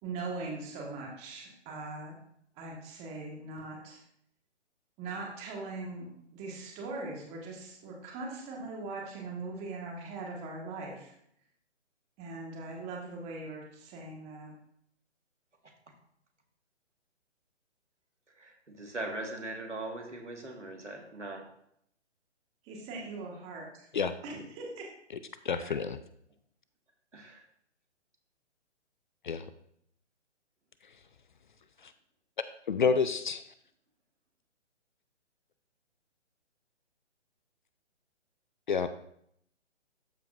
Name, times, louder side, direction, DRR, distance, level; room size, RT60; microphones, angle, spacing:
voice 1, 0.0-2.2 2.6-4.0 5.0-11.1 12.2-14.5 22.7-23.9 24.2-24.8, right 3 dB, 20° right, -1 dB, 1.6 m, -40 dB
voice 2, 18.4-21.5 25.6-25.8 27.1-27.4, right 2 dB, 85° right, 2 dB, 2.0 m, -40 dB
voice 3, 25.4-26.0 29.2-29.5 31.8-31.9 32.7-33.4 38.7-38.9, left 5 dB, 45° left, 12 dB, 0.5 m, -28 dB
13.0 x 4.6 x 2.6 m, 0.69 s
figure-of-eight pair, 135°, 35 cm